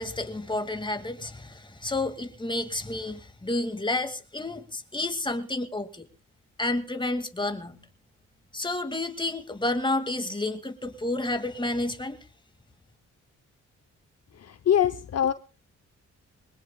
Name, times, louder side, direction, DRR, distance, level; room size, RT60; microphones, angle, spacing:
voice 1, 0.0-6.1 6.6-7.8 8.5-12.2, left 2 dB, 15° left, 2.2 m, -30 dB
voice 2, 14.4-15.3, left 9 dB, 50° left, 0.7 m, -24 dB
22.5 x 20.0 x 2.3 m
supercardioid pair, 60°, 32 cm